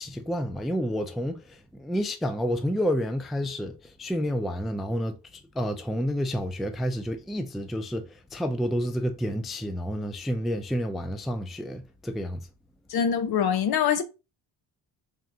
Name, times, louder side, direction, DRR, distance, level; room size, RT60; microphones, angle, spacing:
voice 1, 0.0-12.4, equal, ahead, 0.4 m, -30 dB
voice 2, 12.9-14.0, left 8 dB, 55° left, 0.8 m, -24 dB
3.5 x 3.4 x 2.7 m
supercardioid pair, 65°, 45 cm